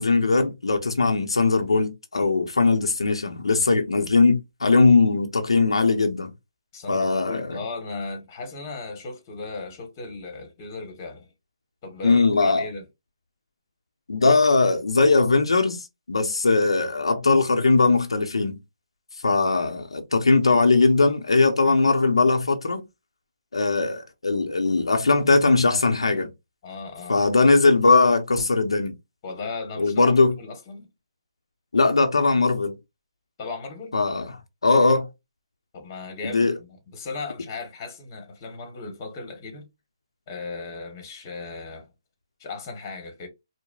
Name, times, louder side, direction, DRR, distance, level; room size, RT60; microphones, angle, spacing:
voice 1, 0.0-6.3 6.9-7.5 12.0-12.7 14.1-18.6 19.2-22.9 23.5-26.3 27.1-28.9 29.8-30.3 31.7-32.7 33.9-34.3 34.6-35.1 36.2-36.6, left 3 dB, 85° left, 0.6 m, -20 dB
voice 2, 6.7-11.3 11.8-12.8 26.6-27.2 29.2-30.9 33.4-34.0 35.7-39.7 40.3-41.9 42.4-43.3, left 3 dB, 35° left, 1.2 m, -36 dB
4.7 x 2.1 x 2.3 m
hypercardioid pair, 150°, 3 cm